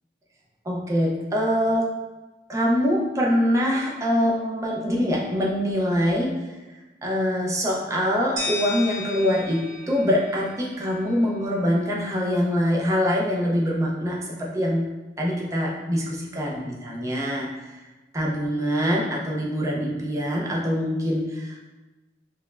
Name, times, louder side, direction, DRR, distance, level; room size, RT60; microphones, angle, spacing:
voice 1, 0.7-1.9 2.5-6.3 7.0-14.8 15.2-17.8 18.1-21.6, equal, 15° right, -3 dB, 0.4 m, -24 dB
sound 1, 8.4-11.3, left 3 dB, 85° right, 0.6 m, -34 dB
5.2 x 2.1 x 2.4 m, 1.1 s
head